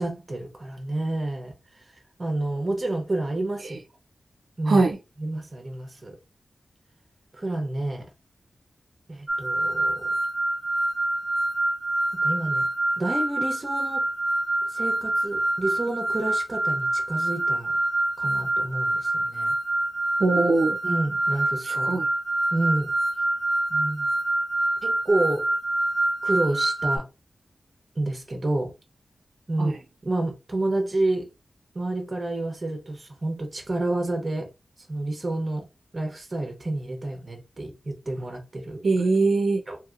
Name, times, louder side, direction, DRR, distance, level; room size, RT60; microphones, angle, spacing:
voice 1, 0.0-1.5 2.2-3.8 4.6-4.8 5.2-6.2 7.4-8.1 9.1-10.0 12.2-12.7 13.0-14.0 14.7-17.7 18.2-19.5 20.8-22.0 22.5-22.9 23.7-24.1 24.8-25.4 26.2-27.0 28.0-28.7 29.5-29.7 30.0-31.3 31.7-34.5 34.9-35.6 35.9-38.8 39.7-39.8, right 2 dB, 30° right, 0.8 m, -29 dB
voice 2, 4.7-5.0 20.2-20.8 21.6-22.1 29.6-29.8 38.8-39.6, right 3 dB, 60° right, 0.4 m, -22 dB
sound 1, 9.3-27.0, right 2 dB, ahead, 0.6 m, -26 dB
2.8 x 2.8 x 2.4 m
wide cardioid pair, 140°, 0 cm